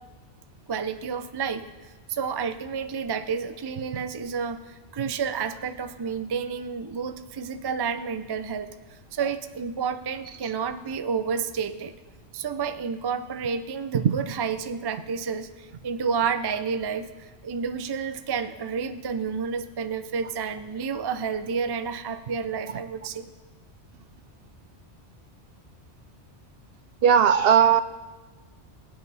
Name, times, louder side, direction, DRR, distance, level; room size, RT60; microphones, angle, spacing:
voice 1, 0.7-8.7 9.1-11.9 12.3-23.3, right 6 dB, 35° right, 10 dB, 0.4 m, -30 dB
voice 2, 27.0-27.8, right 8 dB, 65° right, 13 dB, 0.7 m, -17 dB
23.5 x 8.8 x 4.1 m, 1.3 s
omnidirectional pair, 1.2 m